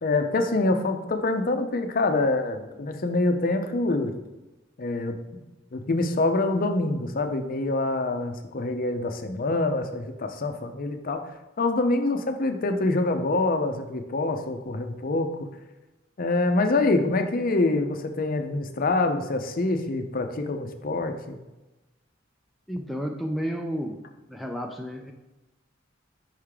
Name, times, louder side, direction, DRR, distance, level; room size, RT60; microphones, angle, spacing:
voice 1, 0.0-4.1 4.8-5.4 5.7-11.3 11.6-15.5 16.2-21.4, left 2 dB, 50° left, 6 dB, 0.6 m, -25 dB
voice 2, 22.7-24.0 24.3-25.1, equal, ahead, 3 dB, 0.3 m, -31 dB
5.6 x 3.6 x 4.8 m, 1.1 s
head